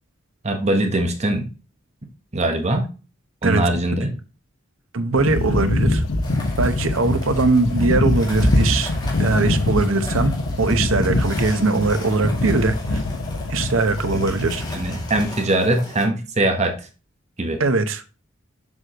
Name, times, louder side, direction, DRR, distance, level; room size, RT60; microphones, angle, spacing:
voice 1, 0.4-1.5 2.3-2.8 3.4-4.1 14.7-16.7 17.4-17.6, right 1 dB, 35° right, 1.2 m, -21 dB
voice 2, 3.4-3.8 4.9-6.0 6.6-8.9 9.2-13.0 13.5-14.6 17.6-18.2, right 3 dB, 85° right, 1.0 m, -21 dB
sound 1, 5.1-15.3, left 2 dB, 85° left, 1.2 m, -23 dB
sound 2, 6.2-16.1, left 2 dB, 20° left, 2.4 m, -38 dB
7.4 x 6.2 x 3.0 m
head